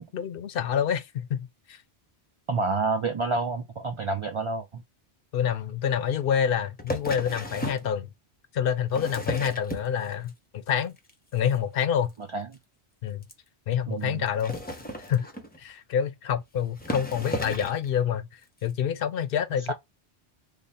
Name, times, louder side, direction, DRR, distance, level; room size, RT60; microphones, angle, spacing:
voice 1, 0.0-1.8 5.3-8.1 8.5-11.0 11.3-12.1 13.0-13.3 13.7-14.5 15.1-15.3 15.6-18.3 18.6-19.7, left 8 dB, 65° left, 0.7 m, -27 dB
voice 2, 2.5-4.8 12.3-12.5 13.9-14.2 19.7-19.8, right 3 dB, 50° right, 0.3 m, -28 dB
sound 1, 6.8-7.9 8.7-10.3 10.7-11.1 11.4-11.6 11.8-11.9 12.1-12.2 12.5-12.6 13.2-13.3 14.3-15.6 16.3-16.4 16.8-17.9 18.6-18.7, equal, 10° left, 0.5 m, -34 dB
3.3 x 2.1 x 4.0 m
omnidirectional pair, 1.1 m